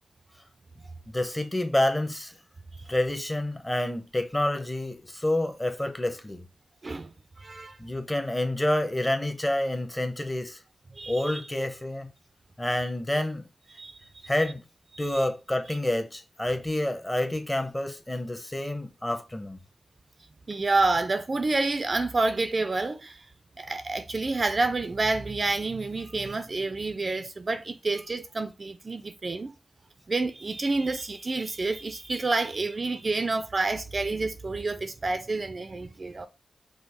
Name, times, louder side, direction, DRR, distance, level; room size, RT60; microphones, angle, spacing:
voice 1, 1.1-2.3 2.9-6.4 7.8-10.6 11.1-12.1 12.6-13.5 14.3-14.6 15.0-19.6, left 1 dB, 15° left, 0.9 m, -28 dB
voice 2, 7.4-7.8 11.0-11.4 13.8-14.0 14.9-15.3 15.7-15.8 20.5-23.2 23.6-29.5 30.1-36.3, right 3 dB, 40° right, 0.4 m, -28 dB
5.2 x 2.0 x 4.4 m
wide cardioid pair, 90°, 0 cm